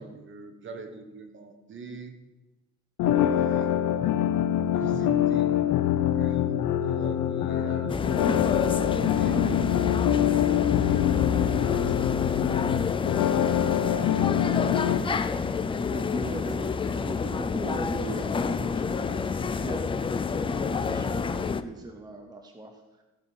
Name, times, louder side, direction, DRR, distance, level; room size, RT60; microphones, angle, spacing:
voice 1, 0.0-2.1 3.3-3.8 4.7-5.6 6.1-8.1 8.8-9.5 10.1-12.4 13.5-14.3 14.7-17.1, right 4 dB, 40° right, 6 dB, 1.4 m, -43 dB
sound 1, 3.0-15.0, left 11 dB, 90° left, 0.8 m, -25 dB
sound 2, 7.9-21.6, left 5 dB, 20° left, 0.3 m, -28 dB
voice 2, 15.2-15.8 16.1-23.0, right 3 dB, 15° right, 4 dB, 0.7 m, -40 dB
15.0 x 5.7 x 6.2 m, 1.1 s
cardioid pair, 160°, 30 cm